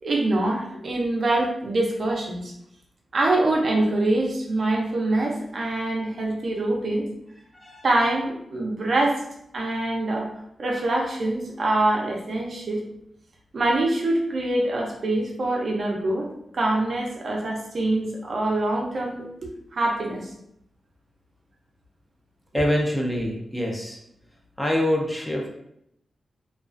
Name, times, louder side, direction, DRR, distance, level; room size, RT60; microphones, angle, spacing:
voice 1, 0.0-2.5 3.1-7.1 7.8-9.2 9.5-10.3 10.6-12.8 13.5-16.3 16.5-19.2 19.7-20.3, right 2 dB, 60° right, -1 dB, 0.5 m, -24 dB
voice 2, 7.5-7.9 22.5-24.0 24.6-25.5, left 1 dB, 10° left, -1 dB, 0.5 m, -25 dB
2.3 x 2.3 x 2.4 m, 0.76 s
wide cardioid pair, 100°, 0 cm